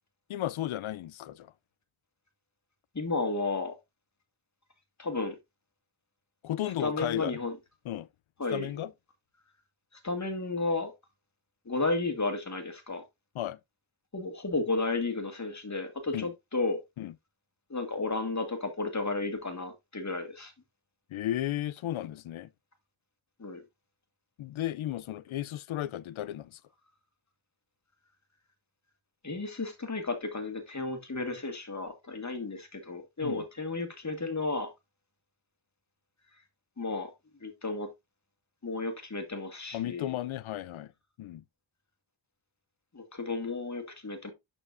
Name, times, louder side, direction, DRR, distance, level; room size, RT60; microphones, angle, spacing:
voice 1, 0.3-1.5 6.4-7.4 7.9-8.1 8.5-8.9 13.4-13.6 16.1-16.3 17.0-17.1 21.1-22.5 24.4-26.6 33.2-33.4 39.7-40.9 41.2-41.4, left 13 dB, 75° left, 0.5 m, -34 dB
voice 2, 2.9-3.7 5.0-5.4 6.8-7.5 8.4-8.8 10.0-10.9 11.7-13.0 14.1-16.8 17.7-20.5 23.4-23.6 29.2-34.7 36.8-37.1 37.4-37.9 38.6-40.2 42.9-44.3, left 3 dB, 35° left, 1.9 m, -33 dB
11.0 x 4.4 x 2.5 m
cardioid pair, 55°, 49 cm